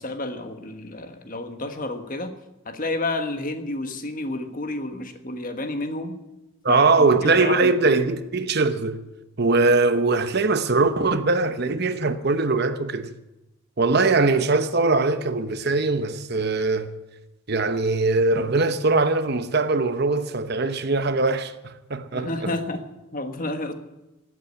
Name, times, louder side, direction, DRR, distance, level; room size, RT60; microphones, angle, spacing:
voice 1, 0.0-2.3 2.6-6.2 6.7-7.7 22.1-22.8 23.1-23.7, left 2 dB, 40° left, 1.4 m, -30 dB
voice 2, 6.6-9.0 9.4-13.1 13.8-16.9 17.5-22.5, right 3 dB, 50° right, 0.9 m, -21 dB
15.5 x 8.6 x 9.6 m
head